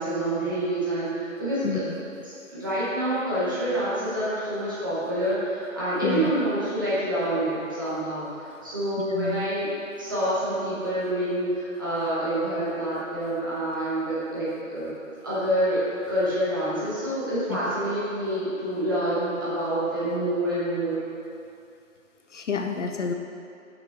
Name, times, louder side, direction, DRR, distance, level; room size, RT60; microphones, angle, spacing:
voice 1, 0.0-1.8 2.2-9.7 10.0-14.9 15.2-15.8 16.1-21.0, right 1 dB, 15° right, -11 dB, 0.9 m, -27 dB
voice 2, 1.6-2.0 6.0-6.3 9.1-9.5 17.5-17.7 22.3-23.1, left 5 dB, 60° left, 4 dB, 0.5 m, -29 dB
6.1 x 5.7 x 3.5 m, 2.7 s
figure-of-eight pair, 165°, 41 cm